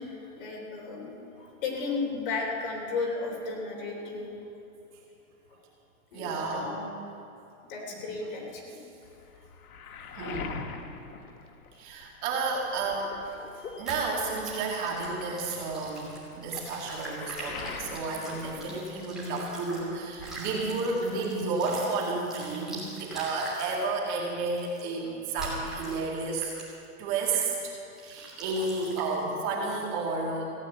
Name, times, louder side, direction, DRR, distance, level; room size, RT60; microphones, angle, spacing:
voice 1, 0.0-4.3 5.5-5.6 6.1-6.9 7.7-8.8 12.0-12.1 13.6-13.9, left 4 dB, 40° left, -1 dB, 3.4 m, -35 dB
voice 2, 6.1-6.7 8.0-8.1 10.1-10.6 11.8-13.4 13.8-16.1 16.4-26.6 27.0-27.7 28.0-30.4, right 3 dB, 30° right, -2 dB, 2.3 m, -31 dB
Waves surf, 9.0-12.2 12.6-19.5 19.8-20.7, left 5 dB, 75° left, 1.4 m, -44 dB
sound 1, 13.9-19.8 20.1-23.8 24.5-24.8 25.4-26.0 26.4-26.8 27.3-27.5 28.0-29.2, right 2 dB, ahead, 3.1 m, -42 dB
16.0 x 8.9 x 9.0 m, 2.6 s
hypercardioid pair, 165°, 43 cm